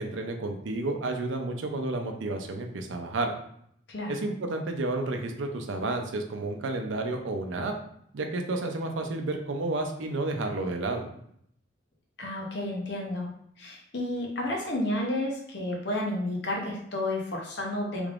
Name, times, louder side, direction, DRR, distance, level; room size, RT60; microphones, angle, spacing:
voice 1, 0.0-3.3 4.1-7.7 8.1-11.0, right 2 dB, 85° right, 4 dB, 0.5 m, -31 dB
voice 2, 12.2-13.3 13.6-18.1, left 1 dB, 60° left, 0 dB, 0.8 m, -31 dB
3.4 x 3.4 x 2.4 m, 0.70 s
head